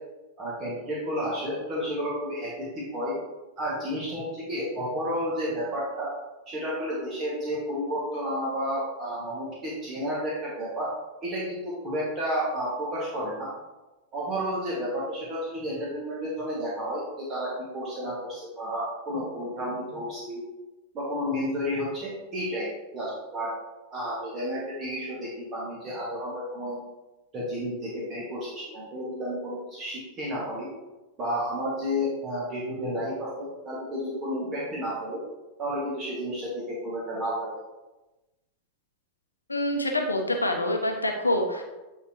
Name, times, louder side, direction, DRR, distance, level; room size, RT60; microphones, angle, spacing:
voice 1, 0.4-3.2 3.6-6.1 6.5-10.9 11.2-13.5 14.1-20.4 20.9-23.5 23.9-26.8 27.3-30.7 31.2-35.2 35.6-37.5, equal, 30° right, -6 dB, 2.0 m, -31 dB
voice 2, 39.5-41.6, left 1 dB, 80° left, 3 dB, 0.9 m, -26 dB
9.4 x 4.2 x 3.0 m, 1.1 s
figure-of-eight pair, 90°, 0 cm